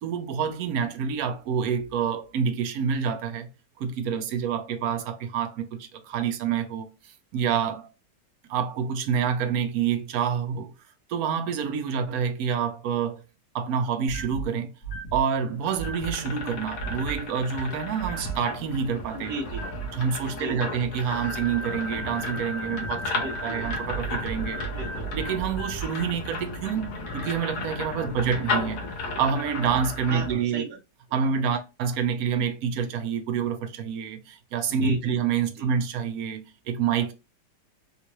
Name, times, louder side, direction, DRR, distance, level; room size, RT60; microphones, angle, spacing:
voice 1, 0.0-3.5 3.8-7.9 8.5-10.7 11.1-13.2 13.5-14.7 15.1-19.3 19.9-24.6 25.1-30.7 31.1-37.1, right 7 dB, 70° right, 0.9 m, -27 dB
sound 1, 14.1-14.4 14.8-15.2 15.8-16.1 16.8-17.1 18.0-18.4 19.5-19.9 21.1-25.9, right 4 dB, 50° left, 1.3 m, -35 dB
sound 2, 15.4-30.3, left 3 dB, 70° left, 1.4 m, -34 dB
voice 2, 19.1-19.7 20.3-20.7 23.1-23.7 24.8-25.1 30.1-30.8 31.1-31.2 34.8-35.2 35.5-35.7, right 1 dB, 15° right, 0.4 m, -36 dB
3.6 x 2.4 x 2.9 m
omnidirectional pair, 1.8 m